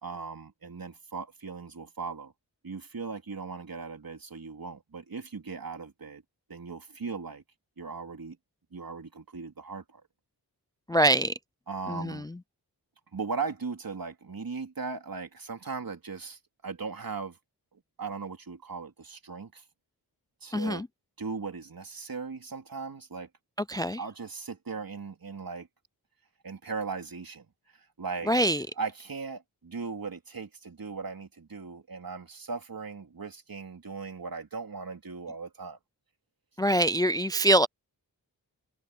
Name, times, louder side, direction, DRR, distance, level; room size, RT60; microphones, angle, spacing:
voice 1, 0.0-2.3 2.6-6.2 6.5-7.4 7.8-8.4 8.7-10.0 11.7-12.3 13.1-17.4 17.7-19.6 20.4-20.8 21.2-23.3 24.0-25.7 26.4-27.5 27.7-28.3 28.8-35.8, right 4 dB, 60° right, 3.6 m, -38 dB
voice 2, 10.9-11.3 11.9-12.1 20.5-20.9 23.7-24.0 28.3-28.6 36.6-37.7, right 1 dB, 10° left, 0.4 m, -24 dB
cardioid pair, 45°, 39 cm